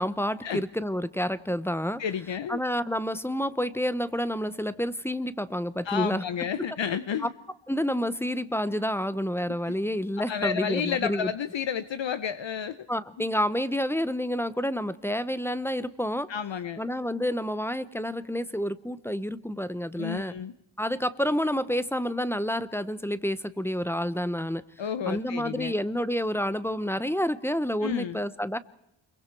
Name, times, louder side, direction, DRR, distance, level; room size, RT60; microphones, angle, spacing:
voice 1, 0.0-2.0 2.5-6.2 7.7-11.3 12.9-16.3 16.8-20.3 20.8-24.6 25.1-28.6, equal, 5° left, 15 dB, 0.8 m, -29 dB
voice 2, 2.0-2.6 5.8-7.3 9.4-9.7 10.2-12.8 16.3-16.8 20.0-20.5 24.8-25.7 27.8-28.2, left 8 dB, 65° left, 12 dB, 0.9 m, -31 dB
29.0 x 23.0 x 4.6 m, 0.81 s
wide cardioid pair, 135°, 47 cm